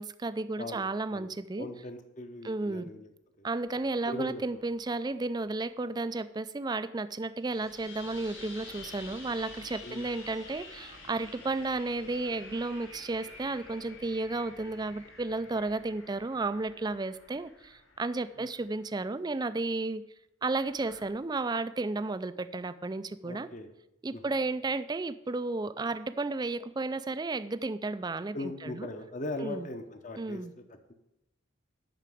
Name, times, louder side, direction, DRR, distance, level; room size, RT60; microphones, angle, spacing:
voice 1, 0.0-1.7 2.4-2.8 3.4-20.0 20.4-23.5 24.0-28.9 29.4-29.7 30.2-30.5, right 3 dB, 20° right, 13 dB, 0.4 m, -33 dB
voice 2, 0.6-1.3 1.5-3.1 3.4-3.5 4.1-4.4 9.8-10.0 18.4-18.5 23.2-23.7 24.1-24.2 28.3-30.6, left 1 dB, 40° left, 8 dB, 0.9 m, -39 dB
sound 1, 3.6-5.8 7.4-19.0 20.6-21.1, left 3 dB, 65° left, 4.7 m, -50 dB
9.1 x 5.9 x 7.6 m, 0.90 s
head